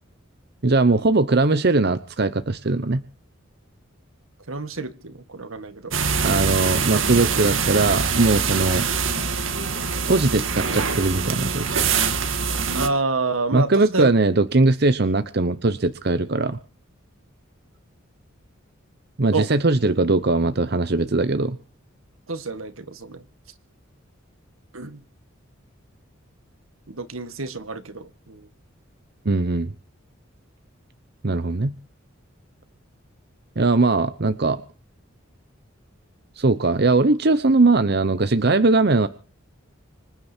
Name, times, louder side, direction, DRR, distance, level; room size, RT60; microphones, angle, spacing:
voice 1, 0.6-3.0 6.2-8.9 10.0-11.7 13.5-16.6 19.2-21.6 29.2-29.7 31.2-31.7 33.6-34.6 36.4-39.1, right 3 dB, 50° right, 12 dB, 0.9 m, -20 dB
voice 2, 4.5-5.9 12.7-14.1 19.3-19.5 22.3-23.3 24.7-25.0 26.9-28.5, right 3 dB, 85° right, 11 dB, 1.8 m, -28 dB
sound 1, 5.9-12.9, right 5 dB, 70° right, 2.0 m, -24 dB
26.0 x 10.0 x 4.5 m, 0.39 s
head